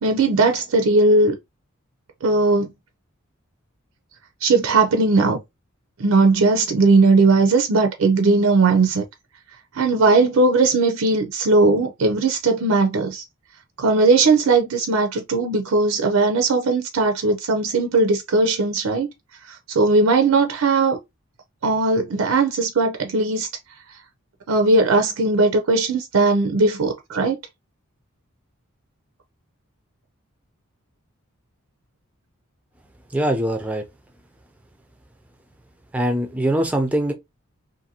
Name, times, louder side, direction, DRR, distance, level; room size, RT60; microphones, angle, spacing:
voice 1, 0.0-1.4 2.2-2.7 4.4-5.4 6.0-9.0 9.8-13.2 13.8-19.1 19.7-21.0 21.6-23.5 24.5-27.4, right 3 dB, 75° right, 0.5 m, -18 dB
voice 2, 33.1-33.8 35.9-37.1, right 1 dB, 5° right, 0.4 m, -22 dB
2.6 x 2.5 x 2.7 m
head